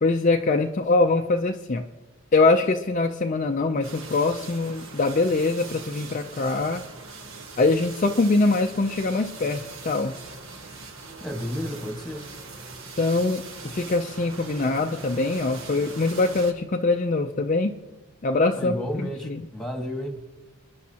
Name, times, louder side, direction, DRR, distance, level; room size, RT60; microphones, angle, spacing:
voice 1, 0.0-1.9 2.3-6.8 7.6-10.1 13.0-17.7 18.2-19.5, left 3 dB, 35° left, 4 dB, 0.5 m, -23 dB
sound 1, 3.8-16.5, right 3 dB, 65° right, 1.4 m, -41 dB
voice 2, 11.2-12.3 18.6-20.2, equal, ahead, 3 dB, 1.7 m, -32 dB
28.0 x 10.5 x 2.9 m, 1.2 s
head